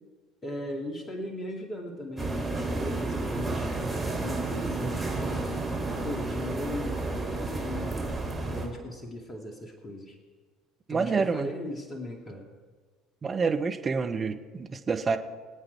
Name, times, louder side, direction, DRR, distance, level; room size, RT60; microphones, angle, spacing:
voice 1, 0.4-3.7 4.2-5.5 6.0-8.0 8.5-10.2 10.9-12.5, left 1 dB, 25° left, 2 dB, 2.5 m, -38 dB
sound 1, 2.2-8.7, right 2 dB, 15° right, 3.8 m, -31 dB
voice 2, 10.9-11.5 13.2-15.2, right 5 dB, 30° right, 7 dB, 1.2 m, -28 dB
24.5 x 8.6 x 4.7 m, 1.4 s
figure-of-eight pair, 60°, 0 cm